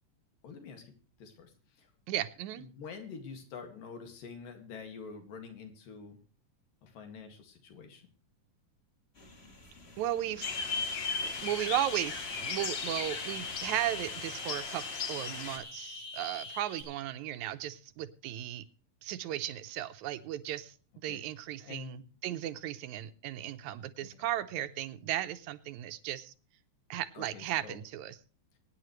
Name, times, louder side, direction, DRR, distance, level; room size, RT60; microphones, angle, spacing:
voice 1, 0.4-0.9 1.2-1.9 2.6-6.2 6.8-8.0 21.1-21.2 21.7-22.0 24.0-24.1 27.2-27.8, left 5 dB, 90° left, 6 dB, 3.7 m, -47 dB
voice 2, 2.1-2.7 10.0-10.5 11.4-18.6 19.0-26.3 26.9-28.2, right 13 dB, 75° right, 11 dB, 1.9 m, -36 dB
sound 1, 9.1-14.1, left 2 dB, 30° left, 1.2 m, -54 dB
sound 2, 10.4-15.6, left 5 dB, 50° left, 2.5 m, -37 dB
sound 3, 11.3-16.8, left 2 dB, 70° left, 5.8 m, -43 dB
24.0 x 9.8 x 3.2 m, 0.38 s
omnidirectional pair, 3.8 m